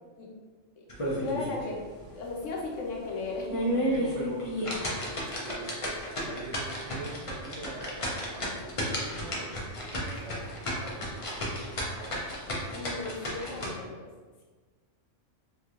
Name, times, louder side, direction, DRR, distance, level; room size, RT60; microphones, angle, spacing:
sound 1, 0.9-1.6 2.0-2.1 2.6-2.7 3.3-13.7, equal, 40° left, 0.5 m, -32 dB
voice 1, 1.2-1.8 2.1-3.9 12.7-14.1, left 3 dB, 75° left, -2 dB, 1.0 m, -36 dB
voice 2, 3.9-5.7 6.1-12.2, right 3 dB, 70° right, -2 dB, 1.0 m, -44 dB
3.2 x 3.0 x 2.4 m, 1.4 s
omnidirectional pair, 1.3 m